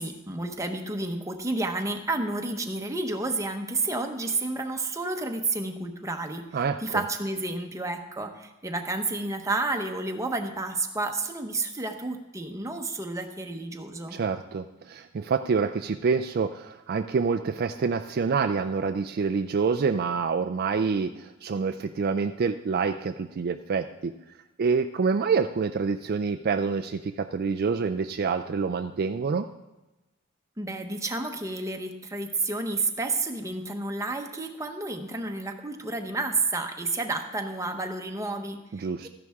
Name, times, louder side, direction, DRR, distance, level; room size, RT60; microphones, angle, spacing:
voice 1, 0.0-14.2 30.6-39.1, right 2 dB, 15° right, 4 dB, 0.9 m, -31 dB
voice 2, 6.5-7.0 14.1-24.1 24.6-29.5 38.7-39.1, right 5 dB, 45° right, 7 dB, 0.4 m, -27 dB
14.0 x 11.0 x 3.5 m, 1.0 s
head